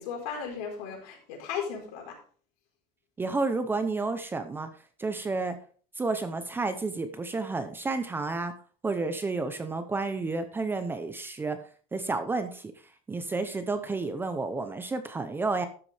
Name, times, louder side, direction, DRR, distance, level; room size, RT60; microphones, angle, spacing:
voice 1, 0.0-2.2, left 7 dB, 75° left, 1 dB, 4.4 m, -36 dB
voice 2, 3.2-4.7 5.0-5.6 6.0-8.5 8.8-11.6 11.9-12.7 13.1-15.7, right 3 dB, 10° right, 9 dB, 0.7 m, -31 dB
13.0 x 8.0 x 3.4 m, 0.43 s
cardioid pair, 170°, 19 cm